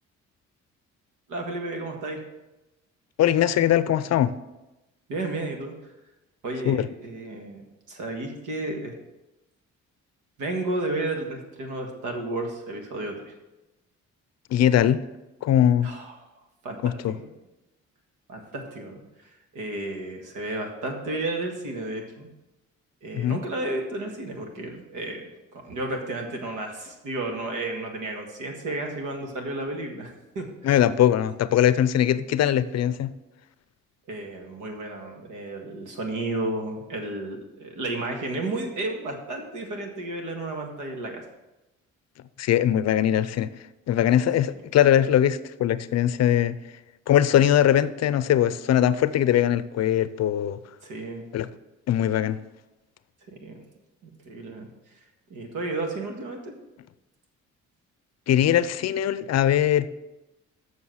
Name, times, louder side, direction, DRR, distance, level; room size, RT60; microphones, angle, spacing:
voice 1, 1.3-2.2 5.1-5.7 6.4-8.9 10.4-13.3 15.8-16.1 16.6-16.8 17.1-17.3 18.3-19.0 19.5-22.3 23.0-30.5 34.1-41.2 50.8-51.2 53.3-53.6 54.0-54.7 55.3-56.5, right 2 dB, 85° right, 1.8 m, -32 dB
voice 2, 3.2-4.3 6.6-6.9 14.5-15.0 15.4-15.9 16.8-17.1 23.1-23.4 30.6-33.1 42.4-43.5 43.9-46.6 47.1-50.6 51.3-51.5 51.9-52.4 58.3-59.9, left 11 dB, 60° left, 0.5 m, -21 dB
7.3 x 6.4 x 6.3 m
cardioid pair, 90°, 30 cm